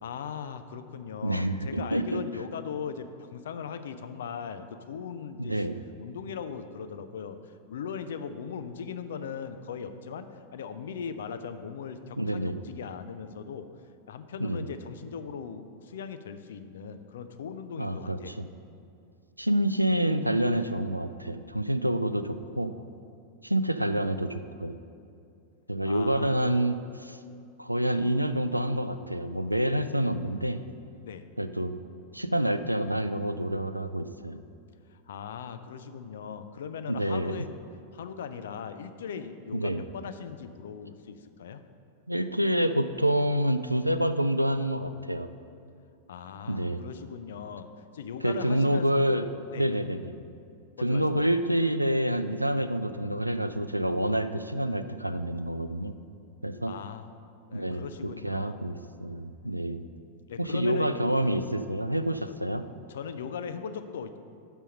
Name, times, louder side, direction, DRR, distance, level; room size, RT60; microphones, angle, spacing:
voice 1, 0.0-5.6 6.0-13.7 14.1-18.4 25.9-26.3 31.0-31.2 35.1-37.5 37.9-41.6 46.1-47.7 47.9-49.0 49.5-49.7 50.8-51.2 56.7-57.1 57.5-58.6 60.3-61.0 62.9-64.1, left 7 dB, 60° left, 10 dB, 0.4 m, -39 dB
voice 2, 1.2-2.2 5.4-5.8 12.2-12.6 14.4-14.7 17.8-18.5 19.4-22.7 23.4-24.8 25.7-27.2 27.6-30.6 31.4-31.8 32.1-34.4 36.9-37.5 39.5-39.8 42.1-45.3 46.5-46.8 48.2-49.2 49.5-50.1 50.8-56.0 56.4-56.7 57.5-59.8 60.4-62.6, right 1 dB, 90° right, 11 dB, 0.3 m, -27 dB
6.1 x 5.5 x 6.4 m, 2.4 s
figure-of-eight pair, 90°, 0 cm